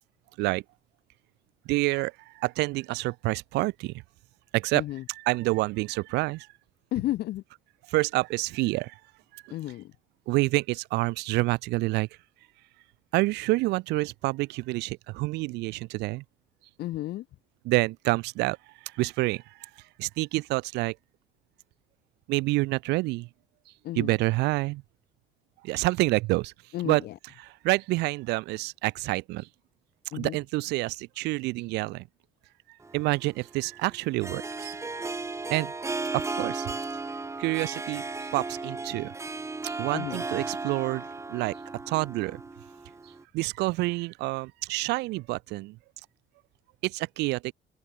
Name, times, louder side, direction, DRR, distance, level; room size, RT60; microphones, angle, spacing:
voice 1, 1.7-3.9 4.5-6.5 7.9-9.0 9.3-9.5 10.3-12.1 13.1-16.2 17.6-18.6 18.8-19.7 20.0-21.0 22.3-23.3 23.9-24.8 25.6-26.5 26.8-27.1 27.4-29.5 30.1-32.0 32.9-34.8 35.5-35.7 36.1-36.7 37.4-38.0 38.3-39.1 39.6-41.6 41.9-42.4 43.3-45.8 46.8-47.5, right 21 dB, 90° right, 0.8 m, -28 dB
voice 2, 6.9-7.4 9.5-9.9 16.8-17.2 23.8-24.1 26.7-27.1 30.1-30.4 39.9-40.2, left 15 dB, 70° left, 1.2 m, -32 dB
Harp, 32.8-43.2, right 3 dB, 15° right, 1.6 m, -35 dB
cardioid pair, 110°, 17 cm